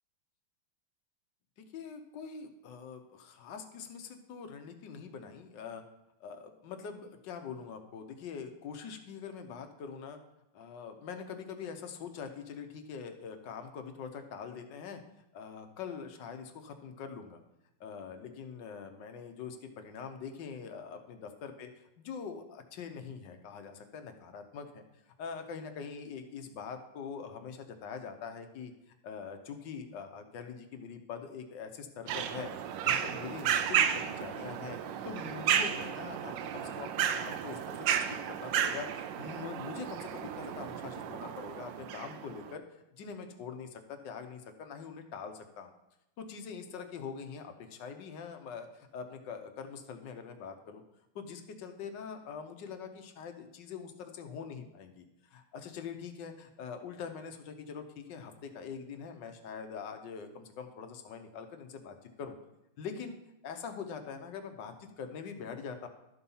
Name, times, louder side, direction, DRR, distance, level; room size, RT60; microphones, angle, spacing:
voice 1, 1.7-5.8 6.2-10.2 10.5-15.0 15.3-17.4 17.8-32.5 32.8-34.8 35.0-42.6 42.9-45.7 46.2-50.8 51.1-62.4 62.8-63.1 63.4-65.9, left 6 dB, 65° left, 6 dB, 1.3 m, -43 dB
sound 1, 32.1-42.5, right 9 dB, 75° right, 1.1 m, -33 dB
12.0 x 4.2 x 5.5 m, 0.89 s
omnidirectional pair, 2.4 m